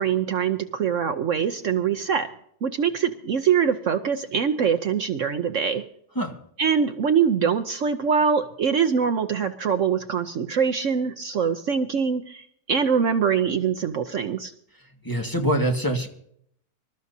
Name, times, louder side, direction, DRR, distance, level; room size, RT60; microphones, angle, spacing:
voice 1, 0.0-2.3 2.6-5.8 6.6-14.5, right 7 dB, 60° right, 7 dB, 1.0 m, -23 dB
voice 2, 15.0-16.1, right 1 dB, 15° left, 1 dB, 1.8 m, -24 dB
25.5 x 13.5 x 2.8 m, 0.68 s
omnidirectional pair, 1.6 m